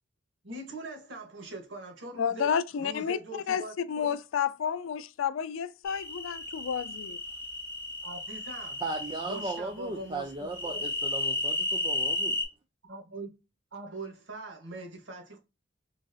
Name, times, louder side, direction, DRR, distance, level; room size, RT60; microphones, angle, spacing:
voice 1, 0.4-4.2 8.0-8.8 9.2-10.8 12.9-13.3 13.7-15.4, right 2 dB, 75° right, 1.1 m, -42 dB
voice 2, 2.2-3.2 3.5-3.6 3.9-7.2, left 7 dB, 85° left, 0.3 m, -30 dB
sound 1, 5.9-9.6 10.5-12.4, left 1 dB, 10° left, 0.7 m, -33 dB
voice 3, 8.8-12.4, right 2 dB, 25° right, 0.4 m, -36 dB
3.9 x 2.6 x 2.3 m
head